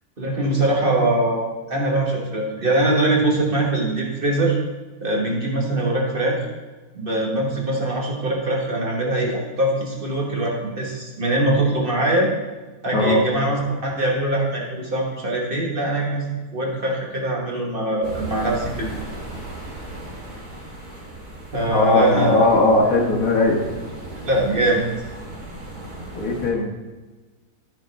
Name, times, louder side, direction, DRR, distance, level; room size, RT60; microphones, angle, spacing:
voice 1, 0.2-4.6 5.0-6.5 6.9-12.3 12.8-18.9 21.5-22.3 24.2-24.8, right 1 dB, 40° right, -2 dB, 1.4 m, -22 dB
voice 2, 12.9-13.2 21.7-23.6 26.1-26.7, left 2 dB, 65° left, 1 dB, 1.6 m, -18 dB
sound 1, 18.0-26.5, right 2 dB, 85° right, 3.0 m, -36 dB
12.5 x 4.4 x 4.0 m, 1.2 s
omnidirectional pair, 1.6 m